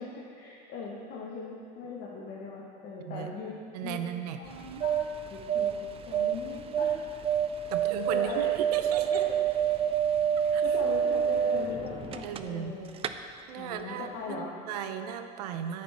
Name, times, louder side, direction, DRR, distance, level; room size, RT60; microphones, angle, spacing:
voice 1, 0.0-3.5 3.8-4.0 4.4-5.0 5.3-6.9 8.1-8.5 8.9-9.2 10.4-12.9 13.6-14.5, left 4 dB, 55° left, -3 dB, 1.2 m, -40 dB
voice 2, 3.0-3.3 3.7-4.4 7.7-9.2 10.4-10.6 12.2-12.8 13.5-15.8, right 8 dB, 85° right, 8 dB, 0.6 m, -36 dB
sound 1, 4.5-12.7 13.0-13.1, right 8 dB, 30° right, 0.4 m, -28 dB
9.2 x 7.5 x 3.4 m, 2.3 s
supercardioid pair, 105°, 20 cm